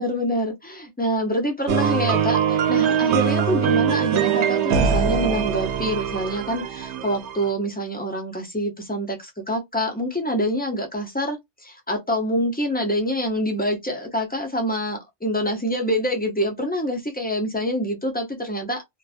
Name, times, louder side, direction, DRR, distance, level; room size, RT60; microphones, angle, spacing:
voice 1, 0.0-18.8, equal, 15° left, 0.4 m, -26 dB
sound 1, 1.7-7.5, right 8 dB, 75° right, 0.8 m, -22 dB
2.5 x 2.3 x 2.4 m
omnidirectional pair, 1.2 m